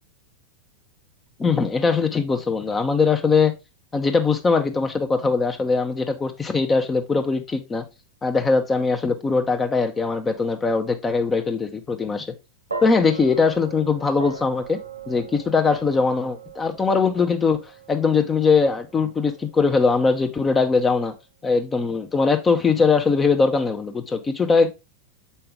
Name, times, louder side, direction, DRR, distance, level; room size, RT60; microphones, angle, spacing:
voice 1, 1.4-3.5 3.9-7.8 8.2-12.3 12.8-14.8 15.1-17.6 17.9-21.1 21.4-24.7, left 4 dB, 15° left, 0.9 m, -21 dB
sound 1, 12.7-21.0, right 5 dB, 75° right, 1.6 m, -39 dB
7.8 x 5.6 x 3.7 m
figure-of-eight pair, 90°, 0 cm